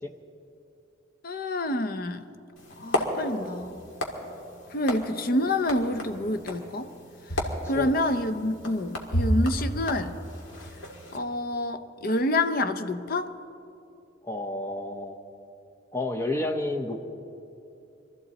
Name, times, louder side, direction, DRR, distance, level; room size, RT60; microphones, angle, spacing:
voice 1, 1.2-2.2 2.8-3.8 4.7-6.9 7.4-10.1 11.1-13.3, left 1 dB, 50° left, 10 dB, 0.6 m, -28 dB
sound 1, 2.6-11.2, equal, 80° left, 2.0 m, -32 dB
voice 2, 14.2-15.1 15.9-17.0, left 2 dB, 15° left, 3 dB, 0.7 m, -30 dB
23.0 x 14.0 x 4.1 m, 2.7 s
head